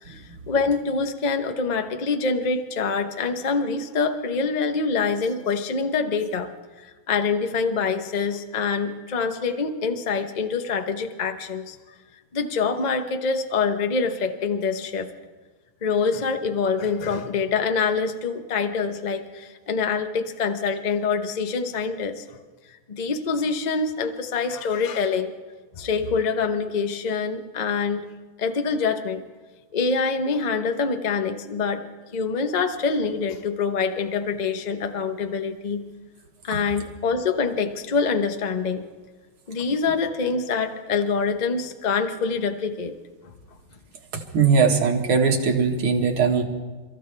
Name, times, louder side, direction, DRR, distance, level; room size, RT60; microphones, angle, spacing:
voice 1, 0.0-6.5 6.8-11.7 12.3-15.1 15.8-22.2 22.7-25.3 25.8-28.1 28.4-29.2 29.7-31.8 32.1-35.8 36.4-38.8 39.5-42.9, left 5 dB, 55° left, 7 dB, 0.4 m, -25 dB
voice 2, 44.3-46.4, right 5 dB, 70° right, 2 dB, 2.5 m, -20 dB
29.5 x 14.5 x 3.4 m, 1.3 s
omnidirectional pair, 2.4 m